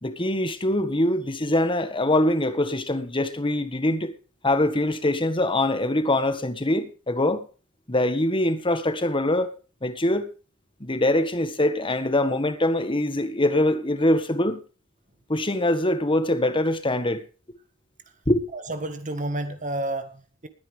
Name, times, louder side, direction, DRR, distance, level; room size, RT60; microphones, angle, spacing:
voice 1, 0.0-4.1 4.4-7.5 7.9-10.3 10.8-14.6 15.3-17.2 18.3-18.4, left 1 dB, 25° left, 1.5 m, -23 dB
voice 2, 18.5-20.5, right 1 dB, 40° right, 1.6 m, -30 dB
20.5 x 10.0 x 3.5 m
head